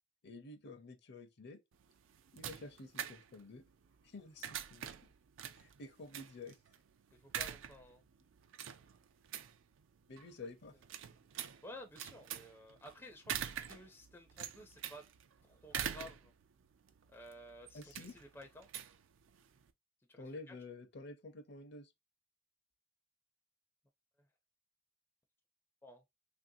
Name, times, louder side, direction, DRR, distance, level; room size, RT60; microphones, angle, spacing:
voice 1, 0.2-1.6 2.3-3.6 4.0-5.1 5.5-6.6 10.1-10.8 17.7-18.1 20.2-21.9, left 2 dB, 60° left, 0.6 m, -50 dB
sound 1, 1.7-19.7, right 9 dB, 85° right, 0.4 m, -46 dB
voice 2, 7.1-8.0 11.6-15.1 15.4-16.3 17.1-18.7 20.1-20.6 25.8-26.0, left 1 dB, 10° left, 0.4 m, -54 dB
3.1 x 2.6 x 2.6 m
head